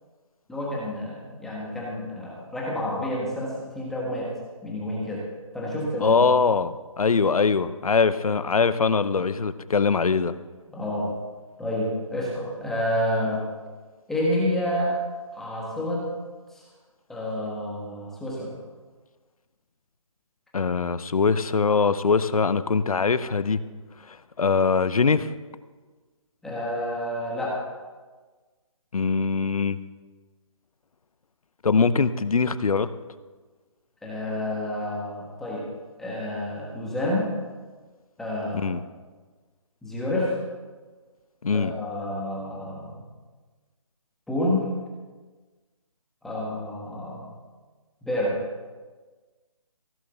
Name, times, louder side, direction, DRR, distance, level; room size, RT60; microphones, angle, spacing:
voice 1, 0.5-4.3 4.6-5.2 5.5-6.2 10.7-11.1 11.6-13.4 14.1-14.9 15.3-16.1 16.5-16.6 17.1-18.5 26.4-27.6 34.0-35.6 36.0-37.3 38.2-38.8 39.8-40.3 41.5-42.9 44.3-44.7 46.2-47.3 48.0-48.4, left 1 dB, ahead, -5 dB, 1.4 m, -29 dB
voice 2, 6.0-10.3 20.5-23.6 24.4-25.3 28.9-29.8 31.6-32.9 38.5-38.8 41.4-41.7, left 5 dB, 90° left, 15 dB, 0.8 m, -22 dB
15.5 x 7.2 x 6.9 m, 1.4 s
hypercardioid pair, 170°, 18 cm